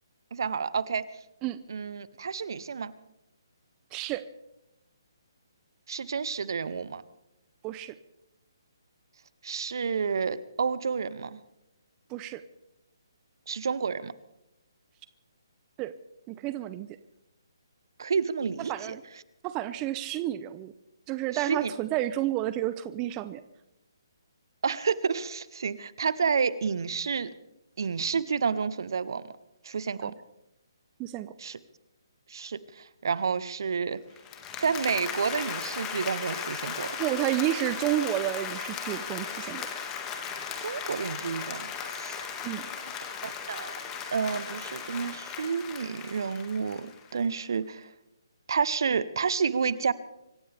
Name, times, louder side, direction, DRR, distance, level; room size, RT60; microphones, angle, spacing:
voice 1, 0.3-1.0 1.7-2.9 5.9-7.0 9.4-11.4 13.5-14.1 18.0-19.0 21.3-21.7 24.6-27.3 27.8-29.3 29.6-30.1 31.4-31.6 32.3-34.0 34.6-37.0 40.6-42.2 43.2-43.7 44.1-47.9 48.5-49.9, right 6 dB, 60° right, 17 dB, 0.9 m, -30 dB
voice 2, 3.9-4.2 7.6-7.9 12.1-12.4 15.8-15.9 16.3-16.9 18.7-19.0 19.4-20.7 21.1-23.4 30.0-30.1 31.0-31.3 37.0-39.7 42.4-42.6, right 14 dB, 20° right, 13 dB, 0.6 m, -30 dB
Applause, 34.2-47.2, left 7 dB, 20° left, 2.0 m, -37 dB
25.5 x 15.0 x 3.5 m, 0.90 s
figure-of-eight pair, 145°, 2 cm